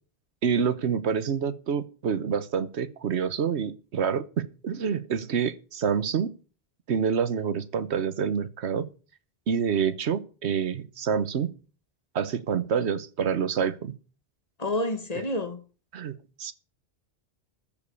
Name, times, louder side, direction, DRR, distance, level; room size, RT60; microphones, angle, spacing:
voice 1, 0.4-6.3 6.9-8.9 9.5-11.5 12.1-13.9 15.1-15.3 15.9-16.5, right 7 dB, 90° right, 1.2 m, -27 dB
voice 2, 14.6-15.6, left 1 dB, 40° left, 1.4 m, -29 dB
14.0 x 5.3 x 8.3 m
omnidirectional pair, 1.1 m